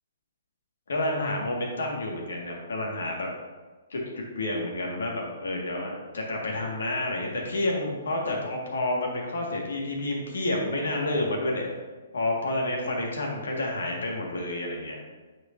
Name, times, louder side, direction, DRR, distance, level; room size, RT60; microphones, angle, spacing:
voice 1, 0.9-3.3 3.9-11.7 12.1-15.0, left 1 dB, 75° left, -1 dB, 1.8 m, -29 dB
9.3 x 4.6 x 2.7 m, 1.3 s
hypercardioid pair, 130°, 0 cm